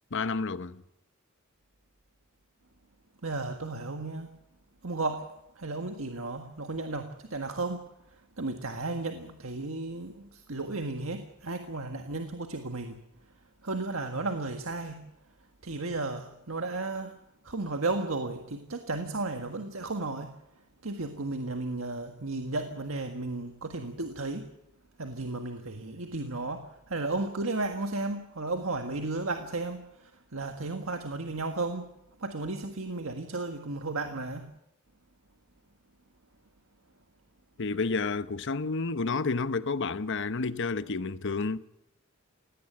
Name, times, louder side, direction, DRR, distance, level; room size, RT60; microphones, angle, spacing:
voice 1, 0.1-0.8 37.6-41.6, left 4 dB, 60° left, 0.9 m, -30 dB
voice 2, 3.2-4.3 4.8-5.3 5.6-7.8 8.4-12.9 13.6-15.0 15.6-17.1 17.4-20.3 20.8-24.4 25.0-26.6 26.9-29.8 30.3-31.9 32.2-34.4, right 3 dB, 70° right, 1.7 m, -34 dB
18.5 x 18.0 x 8.8 m
head